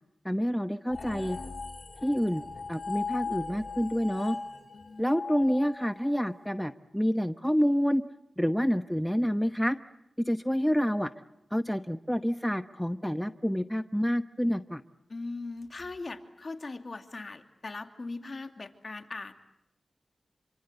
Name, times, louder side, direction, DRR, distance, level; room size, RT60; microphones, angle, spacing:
voice 1, 0.2-1.4 2.0-2.4 2.7-4.4 5.0-8.0 8.4-9.8 10.3-11.1 11.5-14.8, equal, 5° left, 10 dB, 1.0 m, -28 dB
sound 1, 0.9-6.3, left 4 dB, 70° left, 4.9 m, -38 dB
voice 2, 4.7-5.1 15.1-19.3, left 3 dB, 55° left, 7 dB, 2.6 m, -40 dB
26.5 x 25.0 x 8.0 m, 0.83 s
cardioid pair, 55°, 0 cm